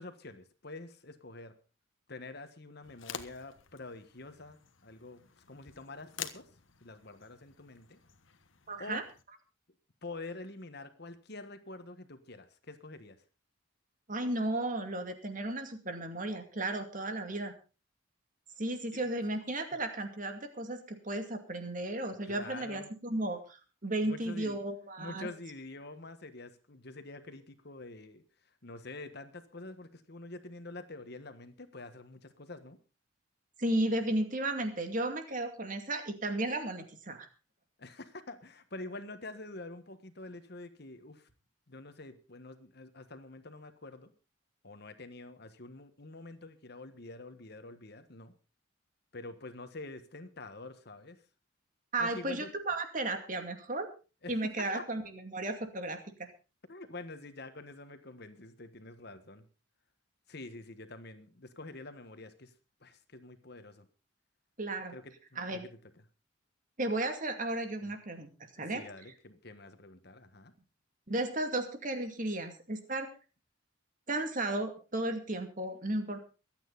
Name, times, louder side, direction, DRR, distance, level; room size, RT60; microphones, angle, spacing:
voice 1, 0.0-1.5 2.1-6.5 6.8-8.0 8.8-9.0 10.0-13.2 22.2-22.9 24.0-24.6 25.0-28.2 28.6-32.8 37.8-41.3 41.7-44.1 44.6-48.3 49.1-51.2 52.0-52.5 54.2-54.8 56.7-59.4 60.3-62.5 62.8-63.9 64.9-65.7 67.8-68.0 68.6-70.5, left 2 dB, 55° left, 10 dB, 1.5 m, -47 dB
sound 1, 2.8-9.2, left 8 dB, 70° left, 1.3 m, -48 dB
voice 2, 8.7-9.0 14.1-17.5 18.6-25.3 33.6-37.3 51.9-53.9 54.3-56.3 64.6-64.9 65.4-65.7 66.8-68.8 71.1-73.1 74.1-76.2, right 1 dB, 40° right, 6 dB, 2.4 m, -34 dB
23.5 x 9.2 x 4.1 m, 0.33 s
head